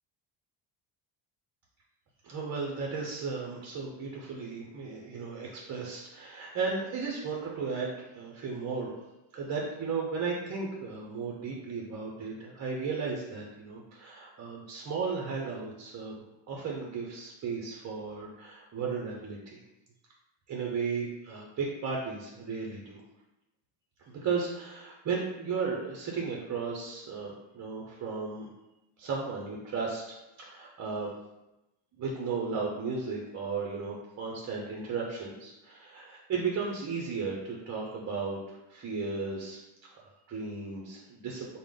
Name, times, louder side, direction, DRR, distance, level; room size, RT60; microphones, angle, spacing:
voice 1, 2.2-8.9 9.3-19.6 20.5-23.0 24.1-28.5 29.0-31.1 32.0-39.6 40.0-41.6, right 5 dB, 35° right, -2 dB, 0.6 m, -35 dB
4.9 x 2.2 x 3.7 m, 0.94 s
cardioid pair, 145°, 49 cm